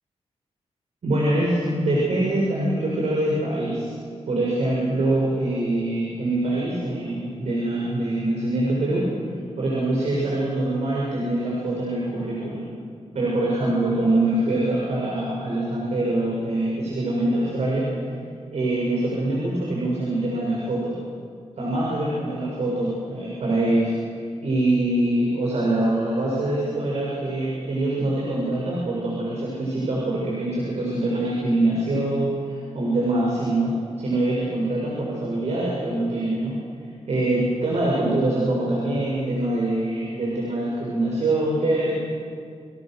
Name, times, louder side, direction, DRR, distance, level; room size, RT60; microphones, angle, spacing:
voice 1, 1.0-4.0 4.3-9.1 9.6-12.7 13.1-17.9 18.5-20.9 21.6-23.9 24.4-33.7 34.0-42.0, right 1 dB, 75° right, -4 dB, 7.5 m, -24 dB
30.0 x 27.5 x 6.7 m, 2.2 s
wide cardioid pair, 105°, 11 cm